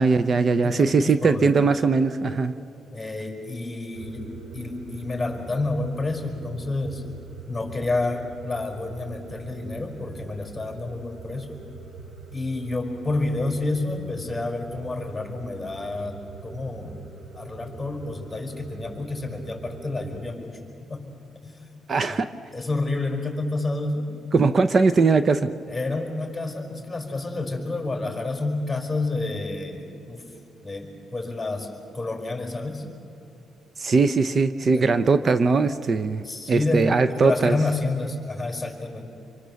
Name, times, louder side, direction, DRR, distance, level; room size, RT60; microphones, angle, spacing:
voice 1, 0.0-2.5 21.9-22.3 24.3-25.5 33.8-37.6, right 4 dB, 40° right, 12 dB, 0.7 m, -20 dB
voice 2, 0.6-1.7 2.9-7.0 7.5-11.6 12.3-17.0 17.3-20.6 20.9-21.1 21.4-21.7 22.0-22.2 22.5-24.1 25.7-30.2 30.6-32.8 34.7-34.9 36.2-36.9 37.2-39.1, left 2 dB, 10° left, 2 dB, 5.1 m, -29 dB
sound 1, 3.9-20.3, right 5 dB, 60° right, 1.3 m, -43 dB
26.5 x 24.5 x 7.0 m, 2.7 s
cardioid pair, 90°, 0 cm